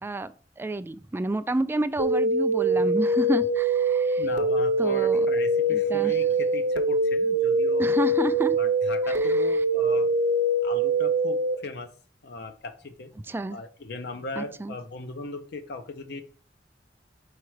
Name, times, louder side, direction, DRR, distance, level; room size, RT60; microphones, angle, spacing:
voice 1, 0.0-4.2 4.8-5.3 5.7-6.1 7.8-8.6 9.0-9.3 13.3-13.6 14.4-14.7, right 2 dB, 15° right, 0.3 m, -29 dB
sound 1, 2.0-11.5, right 1 dB, 70° right, 0.8 m, -23 dB
voice 2, 4.2-7.9 8.6-10.1 10.6-11.9 12.2-13.1 13.5-16.2, left 3 dB, 65° left, 0.6 m, -38 dB
4.8 x 4.3 x 4.7 m
head